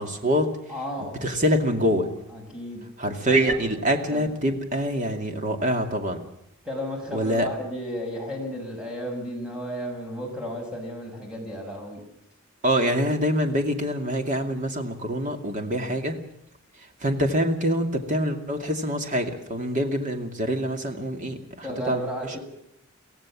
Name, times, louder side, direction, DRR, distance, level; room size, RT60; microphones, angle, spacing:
voice 1, 0.0-0.6 1.2-2.1 3.0-6.2 7.1-7.5 12.6-16.2 17.0-22.4, equal, 40° right, 5 dB, 2.5 m, -25 dB
voice 2, 0.7-1.1 2.3-2.9 3.2-4.3 6.6-12.0 21.4-22.4, equal, 5° right, 0 dB, 6.0 m, -34 dB
24.0 x 16.5 x 7.5 m, 0.76 s
head